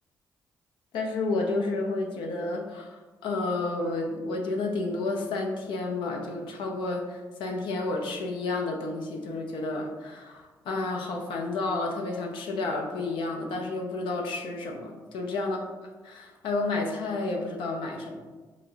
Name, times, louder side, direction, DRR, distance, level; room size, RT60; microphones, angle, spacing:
voice 1, 0.9-3.0 3.2-15.6 16.0-18.2, left 2 dB, 75° left, 1 dB, 0.5 m, -31 dB
4.7 x 2.0 x 2.7 m, 1.3 s
hypercardioid pair, 50°, 9 cm